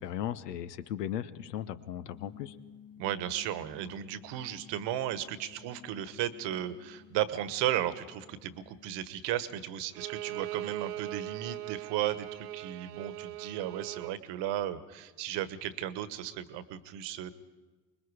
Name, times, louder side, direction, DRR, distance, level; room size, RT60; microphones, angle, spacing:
voice 1, 0.0-2.5, left 10 dB, 85° left, 14 dB, 0.9 m, -37 dB
sound 1, 2.1-9.1, left 8 dB, 55° left, 2.3 m, -55 dB
voice 2, 3.0-17.3, right 12 dB, 60° right, 13 dB, 1.4 m, -35 dB
Bowed string instrument, 9.9-14.2, right 14 dB, 80° right, 0.7 m, -40 dB
25.0 x 21.0 x 4.9 m, 1.3 s
hypercardioid pair, 65°, 47 cm